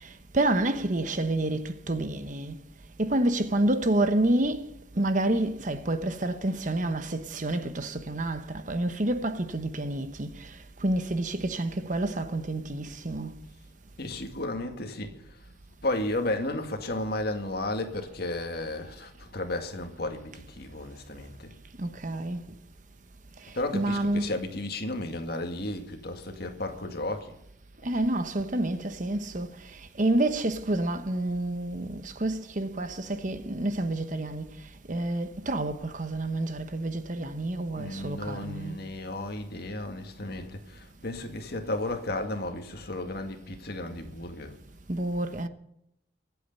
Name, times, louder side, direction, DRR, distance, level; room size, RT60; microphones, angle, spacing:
voice 1, 0.0-2.6 3.0-13.4 21.8-22.4 23.4-24.3 27.8-34.6 34.9-38.8 44.9-45.5, right 1 dB, 40° right, 1.0 m, -29 dB
voice 2, 14.0-15.4 15.8-21.5 23.5-27.4 37.7-44.5, left 2 dB, 50° left, 2.1 m, -33 dB
23.5 x 8.4 x 5.5 m
head